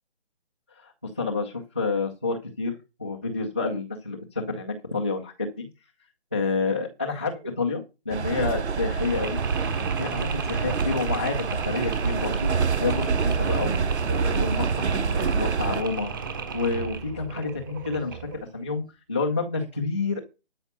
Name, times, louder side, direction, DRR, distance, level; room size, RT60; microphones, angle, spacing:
voice 1, 0.8-2.7 3.0-5.7 6.3-9.4 9.8-12.5 12.8-16.1 16.5-18.2 18.5-18.8 19.1-20.2, left 3 dB, 10° left, -5 dB, 0.5 m, -29 dB
sound 1, 8.1-15.8, right 5 dB, 85° right, 0.8 m, -26 dB
Mechanisms, 8.7-18.5, right 5 dB, 20° right, 1.2 m, -35 dB
12.5 x 5.7 x 6.6 m, 0.29 s
figure-of-eight pair, 160°, 33 cm